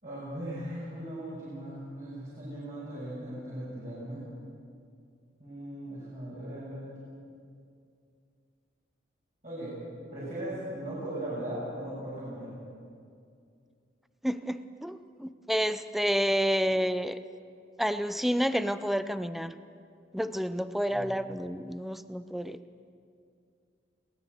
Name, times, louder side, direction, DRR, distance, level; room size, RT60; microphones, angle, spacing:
voice 1, 0.0-4.2 5.4-7.0 9.4-9.7 10.1-12.6 20.9-21.1, right 1 dB, 45° right, -10 dB, 6.9 m, -38 dB
voice 2, 14.2-17.2 17.8-19.5 20.1-22.6, equal, ahead, 11 dB, 0.5 m, -29 dB
23.0 x 18.0 x 6.7 m, 2.4 s
head